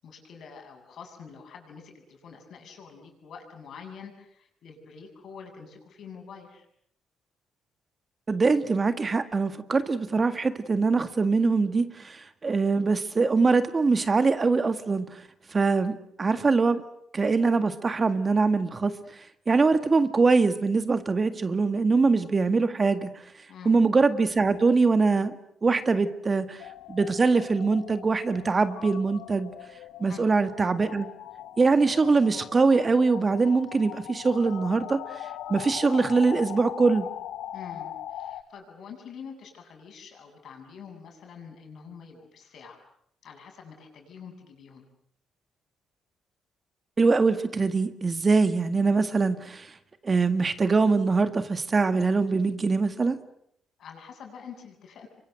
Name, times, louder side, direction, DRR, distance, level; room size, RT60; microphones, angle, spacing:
voice 1, 0.0-6.7 23.5-23.8 30.1-30.3 37.5-42.8 43.2-44.9 53.8-55.1, left 6 dB, 65° left, 4 dB, 7.9 m, -46 dB
voice 2, 8.3-15.2 15.5-16.8 17.1-19.0 19.5-23.1 23.7-25.3 25.6-26.6 26.9-29.5 30.0-31.1 31.6-35.2 35.5-37.1 47.0-49.7 50.0-53.2, right 4 dB, 30° right, 10 dB, 1.9 m, -23 dB
sound 1, 26.6-38.4, left 11 dB, 85° left, 1.6 m, -40 dB
29.0 x 24.5 x 7.9 m, 0.72 s
cardioid pair, 90°, 0 cm